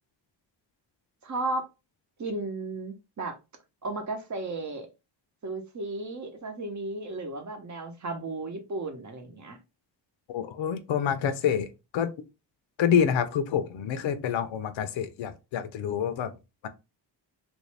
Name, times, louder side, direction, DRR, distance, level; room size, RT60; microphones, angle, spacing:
voice 1, 1.2-1.7 2.2-3.4 3.8-4.9 5.4-9.6, right 2 dB, 40° right, 0.8 m, -34 dB
voice 2, 10.3-12.1 12.8-16.3 16.6-16.7, left 8 dB, 85° left, 0.6 m, -27 dB
3.0 x 2.6 x 3.2 m
wide cardioid pair, 140°, 44 cm